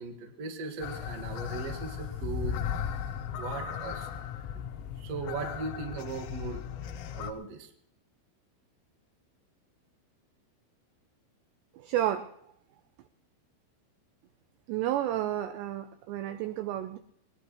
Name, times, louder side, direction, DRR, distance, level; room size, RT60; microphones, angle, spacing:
voice 1, 0.0-2.6 3.4-4.1 4.5-4.6 5.0-6.6 7.1-7.7, right 4 dB, 60° right, 4 dB, 1.7 m, -38 dB
sound 1, 0.8-7.3, left 8 dB, 90° left, 3.6 m, -36 dB
voice 2, 11.8-12.3 14.7-17.0, right 12 dB, 90° right, 9 dB, 2.4 m, -31 dB
21.0 x 20.0 x 3.1 m, 0.72 s
omnidirectional pair, 5.8 m